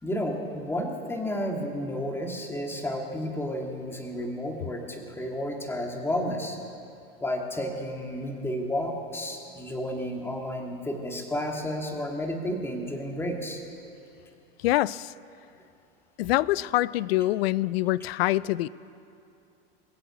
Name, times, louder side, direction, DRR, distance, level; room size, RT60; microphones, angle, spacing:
voice 1, 0.0-6.6 7.2-13.6, equal, 10° left, 2 dB, 1.9 m, -32 dB
voice 2, 14.6-15.1 16.2-18.7, left 16 dB, 75° left, 21 dB, 0.5 m, -25 dB
21.5 x 7.8 x 8.2 m, 2.7 s
supercardioid pair, 120°, 30 cm